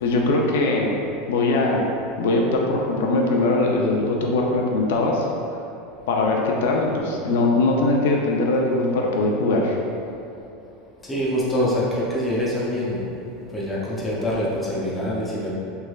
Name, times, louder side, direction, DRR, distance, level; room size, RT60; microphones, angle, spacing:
voice 1, 0.0-0.9 1.3-1.8 2.2-5.3 6.1-9.8, left 2 dB, 85° left, -1 dB, 0.4 m, -21 dB
voice 2, 11.0-13.0 13.5-15.5, equal, 10° left, -7 dB, 0.5 m, -25 dB
3.2 x 3.2 x 2.3 m, 2.7 s
supercardioid pair, 165°, 0 cm